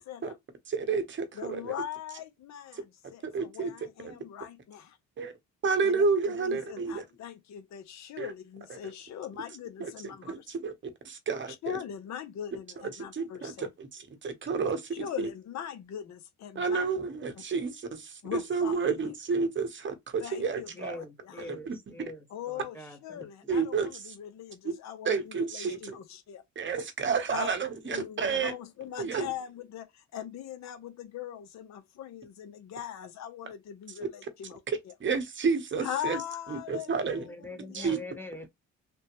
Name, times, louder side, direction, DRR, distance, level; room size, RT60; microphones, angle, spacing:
voice 1, 0.0-0.4 1.3-5.0 5.8-10.5 11.5-13.7 14.9-16.9 17.4-17.5 18.2-19.1 20.2-21.5 22.3-26.4 27.3-27.5 27.8-34.6 34.8-34.9 35.8-38.0, left 9 dB, 65° left, 0.7 m, -41 dB
voice 2, 0.7-1.7 3.2-3.7 4.0-4.1 5.2-5.3 5.6-7.0 8.2-8.3 8.7-8.8 9.8-9.9 10.2-10.7 11.0-11.5 12.9-15.3 16.5-20.9 21.5-21.8 23.5-23.9 24.6-24.7 25.0-26.0 26.6-28.5 29.0-29.3 35.0-36.2 36.5-37.2 37.7-38.0, right 5 dB, 40° right, 0.9 m, -30 dB
voice 3, 20.7-22.2 22.5-23.5 37.1-38.5, left 2 dB, 5° left, 0.6 m, -43 dB
3.4 x 2.0 x 2.9 m
cardioid pair, 90°, 30 cm